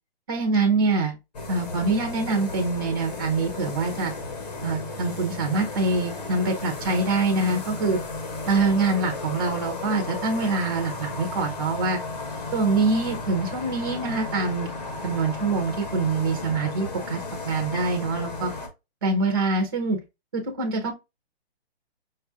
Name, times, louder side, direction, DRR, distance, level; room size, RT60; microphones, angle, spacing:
voice 1, 0.3-1.1 1.5-4.1 4.6-8.0 8.5-12.0 12.5-14.7 15.0-17.2 17.4-18.5 19.0-20.0 20.3-20.9, right 3 dB, 20° right, 0.6 m, -24 dB
sound 1, 1.3-18.7, left 3 dB, 40° left, 0.9 m, -34 dB
5.2 x 2.3 x 2.6 m
hypercardioid pair, 170°, 32 cm